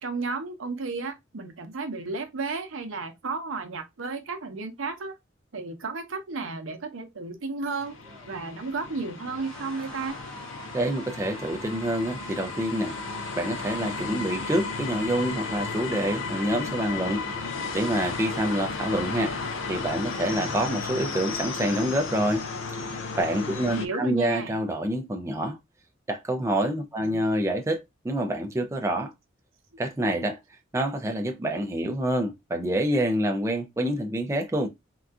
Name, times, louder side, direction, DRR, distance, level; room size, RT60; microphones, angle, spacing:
voice 1, 0.0-5.1 5.5-8.0 8.3-10.2 23.6-24.5 27.0-27.2, right 3 dB, 85° right, 0.7 m, -33 dB
sound 1, 7.8-23.9, left 4 dB, 70° left, 0.5 m, -34 dB
sound 2, 7.9-23.1 23.4-23.6 23.9-24.7, right 2 dB, 5° left, 0.9 m, -47 dB
voice 2, 10.7-13.0 13.4-17.3 17.7-19.4 19.7-22.4 23.2-25.6 26.1-29.1 29.8-30.4 30.7-34.7, right 1 dB, 15° right, 0.3 m, -27 dB
3.7 x 2.4 x 2.3 m
head